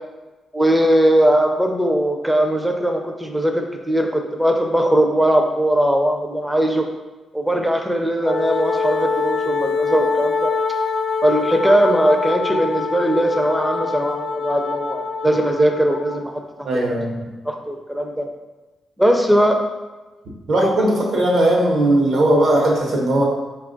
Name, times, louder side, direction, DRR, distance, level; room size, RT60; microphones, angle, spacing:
voice 1, 0.5-6.8 7.3-10.5 11.2-16.8 17.4-18.3 19.0-19.6 20.6-20.7, right 1 dB, 5° right, 3 dB, 0.4 m, -19 dB
Wind instrument woodwind instrument, 8.2-16.2, left 4 dB, 70° left, 0.3 m, -24 dB
voice 2, 16.6-17.1 20.5-23.2, right 1 dB, 65° right, -2 dB, 0.9 m, -18 dB
4.2 x 2.3 x 3.8 m, 1.2 s
wide cardioid pair, 145°, 0 cm